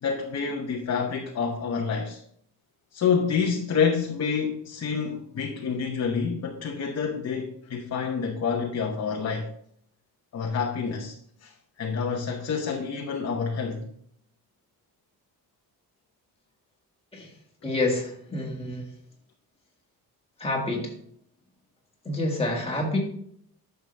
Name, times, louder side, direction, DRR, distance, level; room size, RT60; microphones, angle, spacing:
voice 1, 0.0-2.2 2.9-9.5 10.3-11.2 11.4-11.5 11.8-13.8, left 6 dB, 40° left, 0.9 m, -28 dB
voice 2, 17.6-18.8 20.4-20.9 22.1-23.0, left 2 dB, 15° left, 1.9 m, -28 dB
10.5 x 6.8 x 3.3 m
wide cardioid pair, 175°, 38 cm